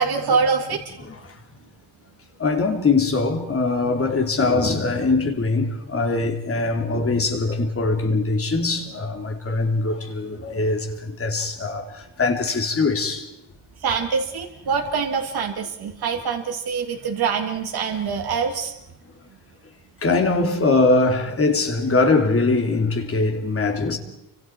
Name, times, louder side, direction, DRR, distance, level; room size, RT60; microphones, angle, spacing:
voice 1, 0.0-1.0 13.8-18.7, right 5 dB, 60° right, 2.6 m, -24 dB
voice 2, 1.0-1.3 2.4-13.3 20.0-24.0, left 3 dB, 30° left, 3.1 m, -22 dB
29.5 x 25.5 x 4.6 m
wide cardioid pair, 160°, 42 cm